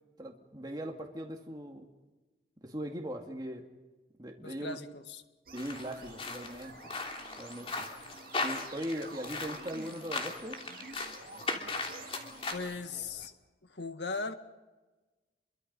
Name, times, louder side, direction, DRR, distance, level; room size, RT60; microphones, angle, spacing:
voice 1, 0.2-1.9 2.6-3.6 4.2-4.8 5.5-6.8 7.4-7.9 8.4-10.6, equal, 25° right, 1 dB, 2.1 m, -39 dB
voice 2, 4.4-5.2 12.5-13.3 13.6-14.3, left 3 dB, 75° left, 8 dB, 1.8 m, -38 dB
sound 1, 5.5-13.3, right 3 dB, 50° right, 2.0 m, -50 dB
sound 2, 5.6-12.5, left 3 dB, 30° left, 3.1 m, -38 dB
28.0 x 23.5 x 5.5 m, 1.2 s
head